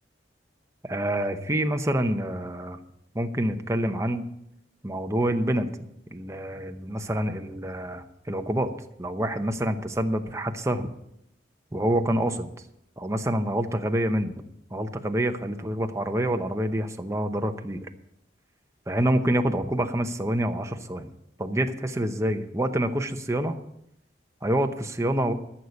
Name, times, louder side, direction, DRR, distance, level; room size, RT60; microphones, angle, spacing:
voice 1, 0.9-2.8 3.1-4.3 4.8-5.7 6.1-8.7 9.0-10.9 11.7-12.5 13.0-14.4 14.7-17.9 18.9-21.1 21.4-23.5 24.4-25.3, right 1 dB, 15° right, 6 dB, 0.9 m, -27 dB
13.5 x 6.6 x 7.1 m, 0.79 s
head